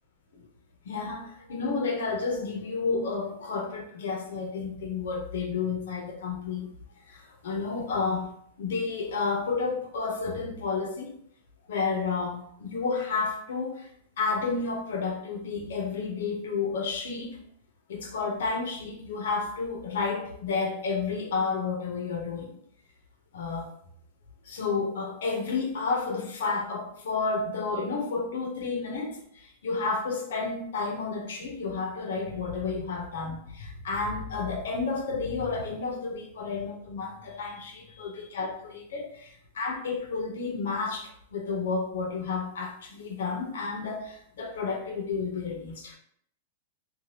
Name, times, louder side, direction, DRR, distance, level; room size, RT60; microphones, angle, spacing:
voice 1, 0.8-6.7 7.1-8.3 8.6-11.1 11.7-13.9 14.2-17.4 17.9-22.6 23.3-23.7 24.4-29.1 29.4-45.9, left 4 dB, 75° left, 2 dB, 0.6 m, -31 dB
3.1 x 2.3 x 2.7 m, 0.66 s
supercardioid pair, 180°, 0 cm